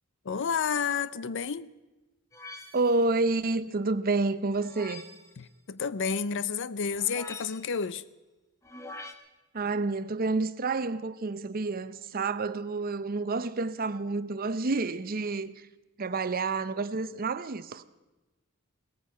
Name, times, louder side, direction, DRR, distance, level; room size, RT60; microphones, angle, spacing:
voice 1, 0.2-1.7 5.4-8.0, left 6 dB, 60° left, 0.5 m, -30 dB
sound 1, 2.3-3.1 4.5-5.3 6.9-7.8 8.6-9.1, left 2 dB, 15° left, 1.1 m, -45 dB
voice 2, 2.7-5.0 9.5-15.5 16.0-17.9, right 3 dB, 40° right, 0.6 m, -29 dB
18.0 x 14.5 x 5.5 m
head